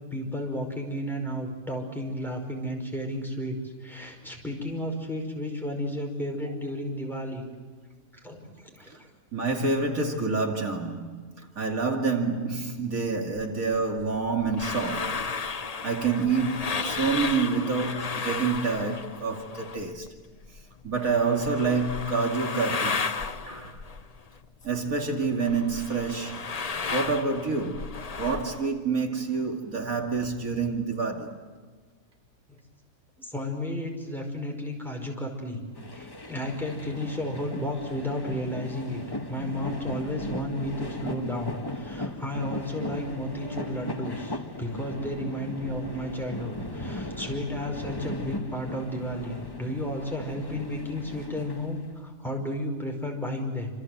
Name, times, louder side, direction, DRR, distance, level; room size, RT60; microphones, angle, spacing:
voice 1, 0.1-3.6 3.8-7.4 8.2-9.1 32.5-32.6 33.2-35.6 35.9-39.0 39.3-53.7, left 1 dB, ahead, 5.3 m, -33 dB
voice 2, 9.3-20.2 20.8-23.0 23.5-23.8 24.6-31.3, right 4 dB, 75° right, 2.9 m, -28 dB
sound 1, 13.4-20.1 20.3-24.9 25.2-28.7, left 4 dB, 35° left, 0.8 m, -34 dB
sound 2, 35.8-52.0, left 2 dB, 15° left, 1.3 m, -37 dB
28.0 x 26.5 x 7.9 m
omnidirectional pair, 1.5 m